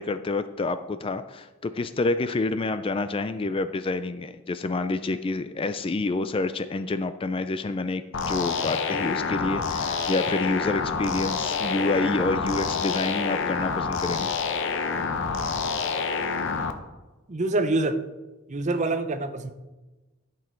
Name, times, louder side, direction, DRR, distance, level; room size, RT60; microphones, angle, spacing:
voice 1, 0.0-14.3, left 3 dB, 25° left, 11 dB, 0.3 m, -28 dB
sound 1, 8.1-16.7, left 5 dB, 60° left, 0.7 m, -27 dB
voice 2, 17.3-18.0 18.5-19.5, right 2 dB, 35° right, 9 dB, 0.6 m, -25 dB
11.0 x 6.2 x 4.5 m, 1.1 s
head